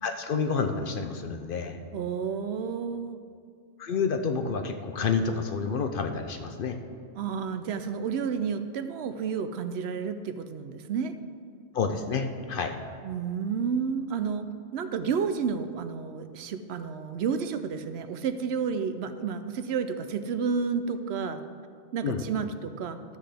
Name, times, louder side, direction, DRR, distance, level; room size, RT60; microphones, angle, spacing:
voice 1, 0.0-1.8 3.8-6.8 11.7-12.7 22.0-22.3, left 5 dB, 60° left, 6 dB, 0.7 m, -29 dB
voice 2, 1.9-3.2 7.1-11.1 13.0-21.4 21.9-23.0, right 6 dB, 70° right, 9 dB, 0.8 m, -31 dB
12.5 x 7.5 x 3.4 m, 2.2 s
omnidirectional pair, 1.2 m